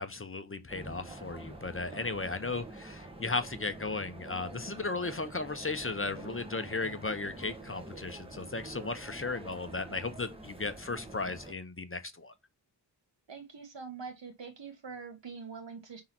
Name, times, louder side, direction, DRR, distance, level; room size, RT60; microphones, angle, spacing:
voice 1, 0.0-12.3, left 3 dB, 30° left, 0.8 m, -36 dB
sound 1, 0.7-11.5, right 2 dB, 10° right, 1.4 m, -46 dB
voice 2, 13.3-16.0, right 5 dB, 70° right, 1.6 m, -44 dB
5.6 x 3.8 x 5.9 m
wide cardioid pair, 70°, 45 cm